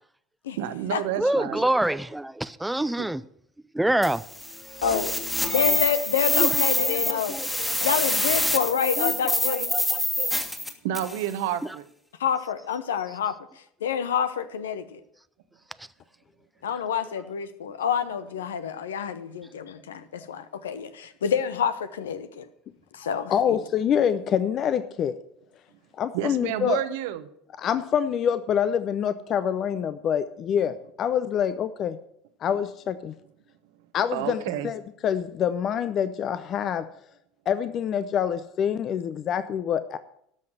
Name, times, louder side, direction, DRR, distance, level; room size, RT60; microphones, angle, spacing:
voice 1, 0.6-1.6 3.0-3.1 10.8-11.8 26.1-27.2 34.1-34.7, right 11 dB, 75° right, 0.9 m, -29 dB
voice 2, 1.2-3.2 3.7-4.2 6.3-7.7 9.0-10.3, right 1 dB, 5° right, 0.4 m, -27 dB
sound 1, 4.0-11.2, left 1 dB, 10° left, 1.8 m, -26 dB
voice 3, 4.8-5.2 5.5-7.4 7.8-9.7 12.2-13.4 13.8-15.0 16.6-22.5 22.9-23.6, left 8 dB, 85° left, 0.8 m, -28 dB
voice 4, 23.3-25.2 25.9-26.8 27.6-32.0 32.4-33.1 33.9-36.9 37.5-40.0, left 8 dB, 45° left, 0.6 m, -26 dB
13.0 x 5.7 x 7.8 m
hypercardioid pair, 80°, 0 cm